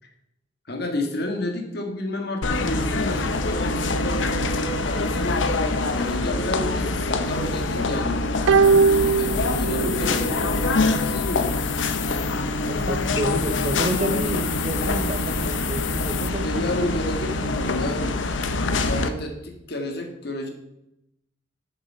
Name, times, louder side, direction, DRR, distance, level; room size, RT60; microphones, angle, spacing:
voice 1, 0.7-5.5 5.9-8.9 9.1-10.5 10.9-11.6 16.4-18.2 18.9-20.5, left 1 dB, 60° left, 4 dB, 1.6 m, -31 dB
sound 1, 2.4-19.1, left 2 dB, 80° left, 0.8 m, -25 dB
sound 2, 8.5-10.1 10.4-10.5, right 5 dB, 80° right, 0.3 m, -19 dB
sound 3, 8.6-16.3, left 14 dB, 35° left, 0.4 m, -34 dB
voice 2, 12.6-16.9 17.2-17.5, equal, 35° right, 9 dB, 0.8 m, -30 dB
7.4 x 6.9 x 5.6 m, 0.83 s
head